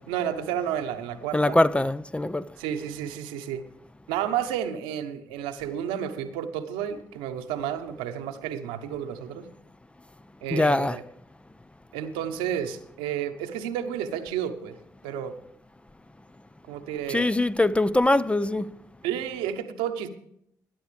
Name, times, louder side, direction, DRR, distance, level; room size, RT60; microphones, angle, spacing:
voice 1, 0.1-1.6 2.6-3.6 4.1-9.5 10.4-11.0 11.9-14.8 15.0-15.3 16.7-17.3 19.0-20.1, right 9 dB, 70° right, 1.1 m, -31 dB
voice 2, 1.3-2.5 10.5-11.0 17.1-18.8, left 2 dB, 10° left, 0.5 m, -23 dB
21.0 x 10.0 x 3.4 m
figure-of-eight pair, 40°, 9 cm